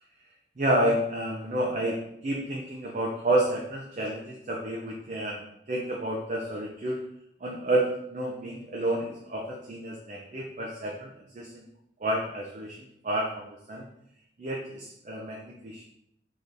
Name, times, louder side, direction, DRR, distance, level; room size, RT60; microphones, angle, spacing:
voice 1, 0.6-7.0 7.4-11.6 12.0-13.9 14.4-15.8, right 1 dB, 45° right, -1 dB, 0.5 m, -30 dB
4.1 x 3.7 x 3.3 m, 0.77 s
head